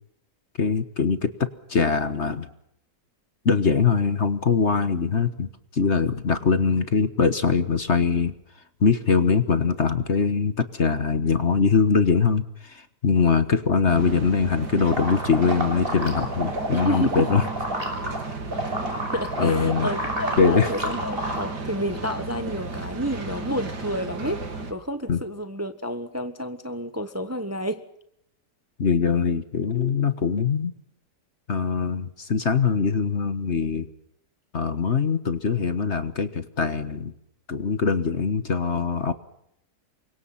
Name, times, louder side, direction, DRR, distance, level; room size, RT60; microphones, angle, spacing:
voice 1, 0.6-2.5 3.4-8.3 8.8-17.4 19.4-19.9 20.4-20.7 25.1-25.2 28.8-30.7 31.5-33.9 34.5-37.1 37.5-39.1, left 5 dB, 45° left, 1.6 m, -22 dB
sound 1, 13.9-24.7, right 3 dB, 80° right, 3.3 m, -34 dB
sound 2, 14.9-18.2 18.5-21.4, right 1 dB, 30° right, 7.3 m, -30 dB
voice 2, 16.7-17.2 19.1-27.8, equal, 10° right, 1.2 m, -30 dB
29.0 x 25.0 x 5.8 m
omnidirectional pair, 1.8 m